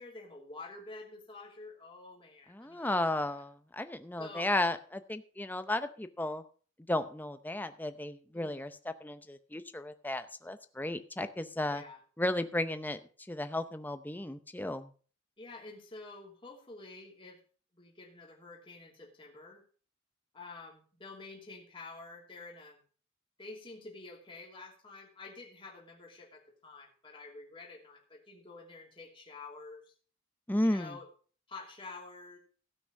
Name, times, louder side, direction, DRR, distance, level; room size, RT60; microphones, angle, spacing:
voice 1, 0.0-3.4 4.2-4.5 8.3-8.6 11.7-12.0 15.4-17.4 17.7-19.6 20.3-22.8 23.4-29.9 30.6-31.1 31.5-32.4, left 3 dB, 25° left, -1 dB, 2.9 m, -49 dB
voice 2, 2.5-6.4 6.9-8.7 9.0-11.8 12.2-13.0 13.3-14.9 30.5-31.0, left 1 dB, 10° left, 10 dB, 0.7 m, -34 dB
16.5 x 6.1 x 5.3 m, 0.41 s
head